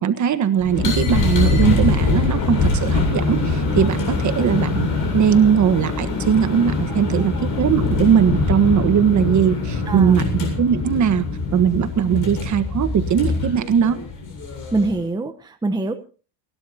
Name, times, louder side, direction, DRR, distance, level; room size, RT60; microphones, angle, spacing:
voice 1, 0.0-11.3 11.5-14.0, right 8 dB, 35° right, 10 dB, 1.5 m, -19 dB
sound 1, 0.6-15.0, left 3 dB, 40° left, 7.6 m, -23 dB
voice 2, 6.9-7.3 9.9-10.2 12.1-12.2 14.7-15.9, right 2 dB, 10° right, 7 dB, 1.0 m, -24 dB
30.0 x 12.5 x 2.9 m, 0.37 s
cardioid pair, 130°, 49 cm